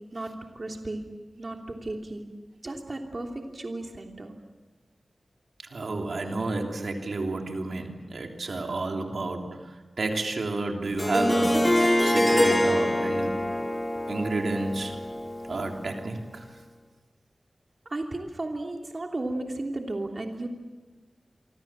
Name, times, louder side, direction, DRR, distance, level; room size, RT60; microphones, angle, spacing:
voice 1, 0.1-1.0 1.4-2.2 2.6-4.3 17.9-20.5, right 2 dB, 45° right, 2 dB, 3.0 m, -34 dB
voice 2, 5.6-13.4 14.1-15.0 15.5-16.5, right 2 dB, 80° right, 2 dB, 3.3 m, -31 dB
Harp, 11.0-15.9, left 1 dB, 20° left, 4.2 m, -25 dB
28.0 x 25.5 x 7.5 m, 1.2 s
wide cardioid pair, 85°, 0 cm